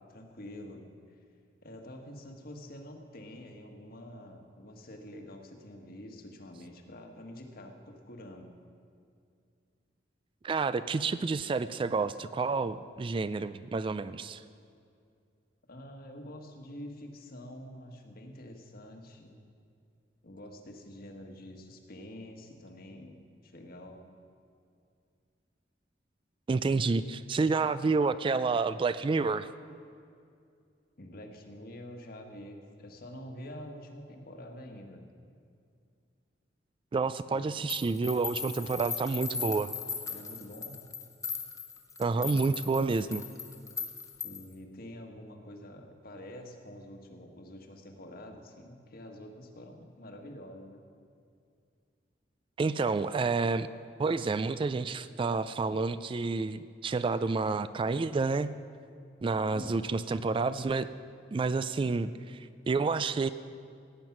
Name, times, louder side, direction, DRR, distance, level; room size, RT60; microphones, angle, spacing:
voice 1, 0.1-1.2 1.6-8.5 15.7-19.4 20.2-24.0 31.0-35.0 37.3-37.4 40.1-40.8 44.2-50.8 59.5-59.8, left 1 dB, 55° left, 3 dB, 1.5 m, -47 dB
voice 2, 10.4-14.4 26.5-29.5 36.9-39.7 42.0-43.2 52.6-53.7 54.0-58.5 59.2-60.9 61.3-63.3, right 4 dB, 30° right, 14 dB, 0.3 m, -29 dB
sound 1, 37.7-44.5, left 5 dB, 20° left, 1.1 m, -38 dB
17.0 x 9.2 x 5.9 m, 2.4 s
head